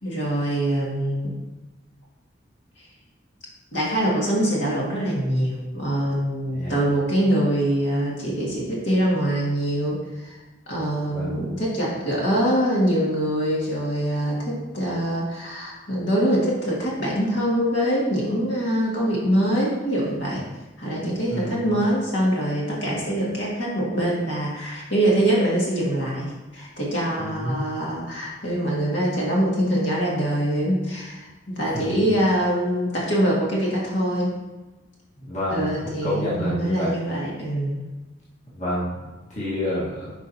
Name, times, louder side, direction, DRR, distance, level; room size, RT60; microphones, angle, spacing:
voice 1, 0.0-1.3 3.7-10.4 10.7-20.4 20.8-34.3 35.5-37.8, right 1 dB, 65° left, -5 dB, 2.1 m, -24 dB
voice 2, 11.1-11.4 21.3-21.7 27.2-27.6 31.7-32.0 35.3-36.9 38.5-40.1, left 1 dB, 35° left, -8 dB, 1.6 m, -29 dB
11.5 x 4.9 x 2.9 m, 1.1 s
head